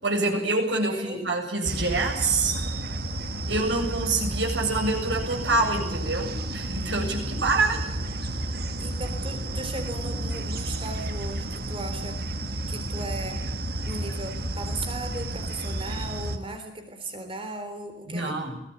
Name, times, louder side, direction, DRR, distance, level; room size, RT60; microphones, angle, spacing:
voice 1, 0.0-2.5 3.5-7.8 18.1-18.6, right 3 dB, 75° right, 1 dB, 7.8 m, -26 dB
voice 2, 0.9-1.2 7.0-7.4 8.8-12.4 12.7-13.5 13.8-18.4, right 2 dB, 30° right, 7 dB, 3.6 m, -37 dB
sound 1, 1.6-16.4, right 1 dB, 55° right, 1.9 m, -31 dB
22.5 x 17.0 x 9.3 m, 0.84 s
head